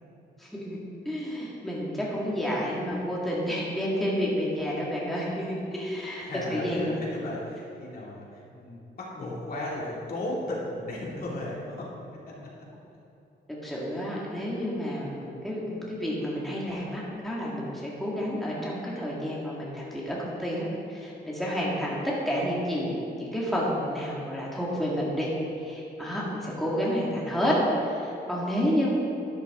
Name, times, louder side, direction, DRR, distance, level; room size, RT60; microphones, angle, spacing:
voice 1, 0.4-0.8 1.1-6.2 6.5-6.9 13.5-25.3 25.6-27.6 27.9-28.9, equal, ahead, -6 dB, 2.0 m, -30 dB
voice 2, 6.2-11.9 12.3-12.4, left 1 dB, 55° left, -5 dB, 2.7 m, -35 dB
12.5 x 9.8 x 3.7 m, 3.0 s
wide cardioid pair, 140°, 18 cm